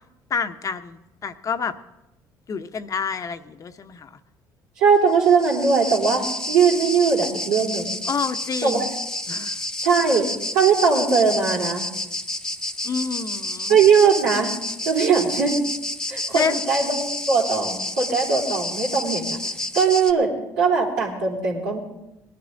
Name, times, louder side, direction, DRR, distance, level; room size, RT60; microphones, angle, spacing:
voice 1, 0.3-1.7 2.5-4.2 8.1-8.9 9.3-9.6 12.8-13.8 16.3-16.6, left 5 dB, 40° left, 9 dB, 0.9 m, -28 dB
voice 2, 4.8-6.2 6.5-8.0 8.6-8.8 9.8-10.3 10.5-11.8 13.7-14.5 14.8-15.6 16.1-19.4 19.7-20.3 20.6-21.8, right 5 dB, 90° right, -3 dB, 3.3 m, -20 dB
sound 1, 5.1-20.1, left 1 dB, 5° left, 0.9 m, -30 dB
19.0 x 10.5 x 3.9 m, 0.94 s
supercardioid pair, 70°, 9 cm